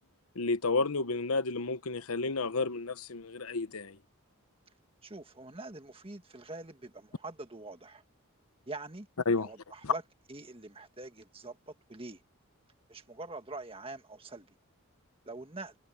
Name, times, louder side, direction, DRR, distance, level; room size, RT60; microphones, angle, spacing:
voice 1, 0.3-4.0 9.3-9.5 9.8-9.9, left 3 dB, 85° left, 1.0 m, -31 dB
voice 2, 5.0-8.0 8.7-9.1 9.4-10.0 10.3-12.2 12.9-14.5 15.3-15.8, right 2 dB, 25° right, 1.8 m, -44 dB
head